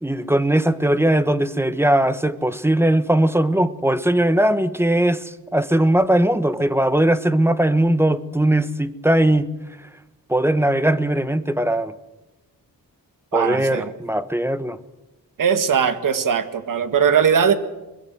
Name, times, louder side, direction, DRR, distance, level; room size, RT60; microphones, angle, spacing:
voice 1, 0.0-9.5 10.3-11.9 13.3-14.8, right 1 dB, 5° right, 1.1 m, -19 dB
voice 2, 13.3-13.9 15.4-17.5, right 7 dB, 60° right, 1.9 m, -19 dB
22.5 x 21.0 x 7.7 m
cardioid pair, 110°, 36 cm